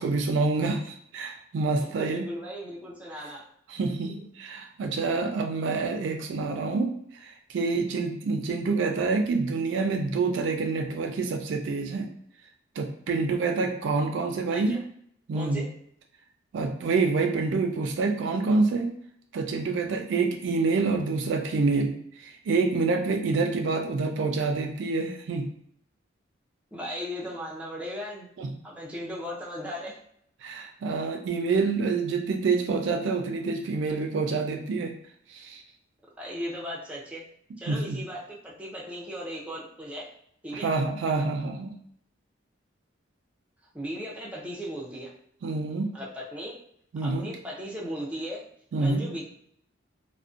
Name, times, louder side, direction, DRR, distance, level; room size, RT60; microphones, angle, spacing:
voice 1, 0.0-2.3 3.7-6.9 7.2-12.1 12.8-14.8 15.3-15.6 16.5-18.9 19.3-25.5 28.4-28.5 30.4-34.9 35.3-35.6 37.7-38.0 40.5-41.7 45.4-45.9 46.9-47.3 48.7-49.0, right 4 dB, 65° right, 4 dB, 0.3 m, -27 dB
voice 2, 1.8-3.5 14.5-14.8 15.3-15.7 26.7-28.3 28.6-30.0 36.2-37.2 37.6-40.1 40.4-40.7 43.7-45.1 45.9-46.6 47.0-48.5 48.8-49.3, equal, 5° right, -4 dB, 0.4 m, -37 dB
2.5 x 2.1 x 2.4 m, 0.68 s
head